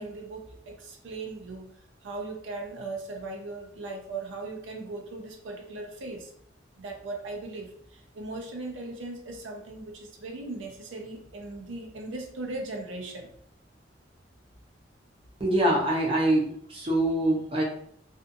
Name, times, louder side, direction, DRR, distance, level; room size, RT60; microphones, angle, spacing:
voice 1, 0.0-1.7 2.0-6.3 6.8-13.3, right 2 dB, 85° right, 1 dB, 0.5 m, -38 dB
voice 2, 15.4-17.6, right 1 dB, 30° right, -2 dB, 0.6 m, -24 dB
2.6 x 2.4 x 2.5 m, 0.63 s
head